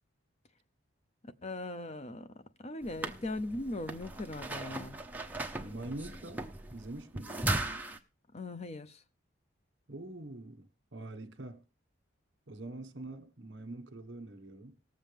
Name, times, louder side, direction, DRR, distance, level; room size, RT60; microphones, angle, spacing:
voice 1, 1.4-5.0 8.3-9.0, left 2 dB, 30° left, 0.5 m, -39 dB
sound 1, 2.8-8.0, right 2 dB, 10° right, 0.7 m, -37 dB
voice 2, 5.6-7.5 9.9-11.6 12.5-14.8, right 2 dB, 60° right, 1.4 m, -44 dB
19.0 x 7.4 x 3.5 m
head